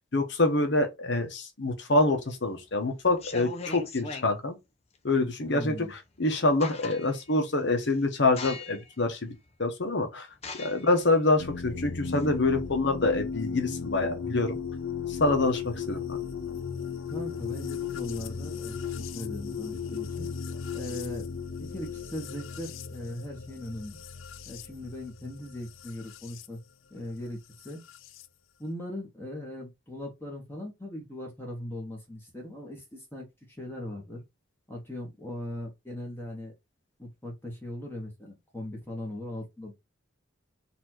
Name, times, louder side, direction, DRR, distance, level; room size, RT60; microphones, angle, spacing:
voice 1, 0.1-4.6 5.0-10.3 10.5-14.6 15.1-16.2, left 2 dB, 60° left, 0.9 m, -26 dB
sound 1, 2.2-2.6 3.1-4.3 6.0-6.1 6.4-7.3 7.8-8.0 8.4-8.9 9.5-9.6 10.4-12.7, left 3 dB, 30° left, 0.7 m, -40 dB
voice 2, 5.4-5.9 17.1-18.8 19.1-20.3 20.7-21.3 21.6-24.0 24.5-26.6 26.9-27.4 27.6-27.8 28.6-33.3 33.6-34.2 34.7-36.5 37.0-39.8, left 1 dB, 10° left, 1.2 m, -39 dB
sound 2, 11.4-26.5 27.6-28.3, left 6 dB, 80° left, 0.5 m, -36 dB
4.2 x 2.6 x 4.3 m
head